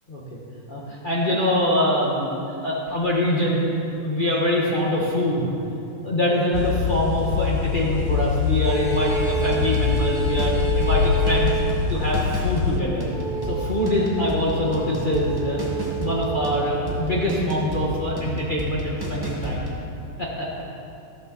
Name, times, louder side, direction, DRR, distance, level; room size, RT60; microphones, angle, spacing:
voice 1, 0.7-5.5 6.0-11.6 11.9-13.0 13.4-15.6 16.0-19.7 20.2-20.5, left 1 dB, 45° left, -5 dB, 0.6 m, -24 dB
sound 1, 6.5-12.8, left 8 dB, 80° left, 1.4 m, -24 dB
sound 2, 8.6-12.0 13.0-17.4, right 7 dB, 65° left, 2.7 m, -30 dB
sound 3, 9.5-19.8, right 1 dB, 20° right, 0.6 m, -31 dB
14.5 x 13.0 x 4.0 m, 2.7 s
omnidirectional pair, 3.5 m